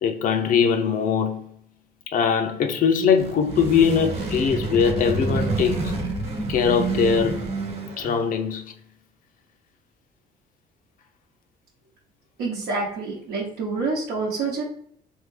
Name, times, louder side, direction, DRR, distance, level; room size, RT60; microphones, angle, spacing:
voice 1, 0.0-1.5 2.1-6.0 6.5-7.5 8.0-8.7, left 6 dB, 55° left, 0.5 m, -21 dB
sound 1, 3.0-8.3, right 3 dB, 35° right, 1.1 m, -28 dB
voice 2, 12.4-14.6, right 3 dB, 80° right, 0.8 m, -27 dB
3.5 x 2.2 x 3.1 m
cardioid pair, 110°, 17 cm